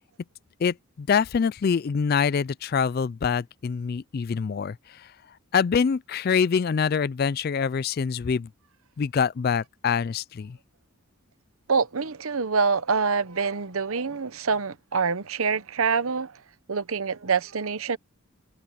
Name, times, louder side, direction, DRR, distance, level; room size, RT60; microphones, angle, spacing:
voice 1, 0.6-5.1 5.5-8.5 9.0-10.6, left 6 dB, 45° left, 0.3 m, -25 dB
voice 2, 11.7-16.3 16.7-18.0, right 5 dB, 75° right, 0.9 m, -25 dB
head